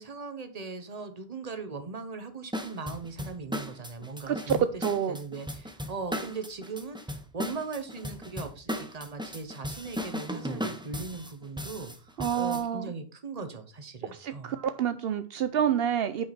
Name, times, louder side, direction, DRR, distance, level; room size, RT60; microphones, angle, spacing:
voice 1, 0.0-14.6, right 4 dB, 40° right, 8 dB, 1.2 m, -39 dB
sound 1, 2.5-12.6, equal, 5° right, 0.8 m, -36 dB
voice 2, 4.3-5.2 12.2-12.9 14.1-16.3, right 9 dB, 75° right, 11 dB, 0.8 m, -28 dB
9.6 x 5.6 x 4.3 m, 0.37 s
omnidirectional pair, 1.1 m